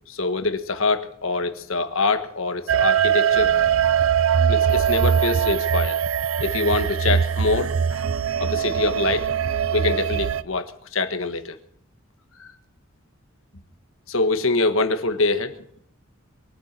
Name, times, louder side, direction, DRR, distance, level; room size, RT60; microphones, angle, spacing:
voice 1, 0.1-3.5 4.5-6.0 6.4-8.0 8.4-9.3 9.7-11.6 12.4-12.5 14.1-15.8, left 3 dB, 80° left, 8 dB, 1.5 m, -24 dB
sound 1, 2.7-10.4, right 8 dB, 80° right, 0.5 m, -21 dB
22.5 x 9.2 x 6.0 m, 0.68 s
head